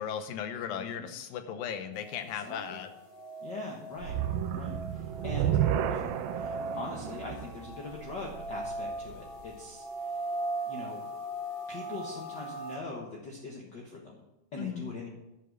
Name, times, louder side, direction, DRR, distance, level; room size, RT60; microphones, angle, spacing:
voice 1, 0.0-2.9 14.6-14.9, left 8 dB, 80° left, 8 dB, 2.6 m, -36 dB
voice 2, 0.6-1.1 2.4-2.8 3.4-4.1 4.5-5.6 5.9-10.2 10.7-11.0 11.7-14.2 14.5-15.1, left 3 dB, 55° left, -1 dB, 1.2 m, -42 dB
sound 1, 1.9-12.8, right 1 dB, 25° left, 1.4 m, -40 dB
sound 2, 4.0-9.3, right 10 dB, 85° right, 2.4 m, -32 dB
11.0 x 7.7 x 6.6 m, 0.96 s
omnidirectional pair, 4.1 m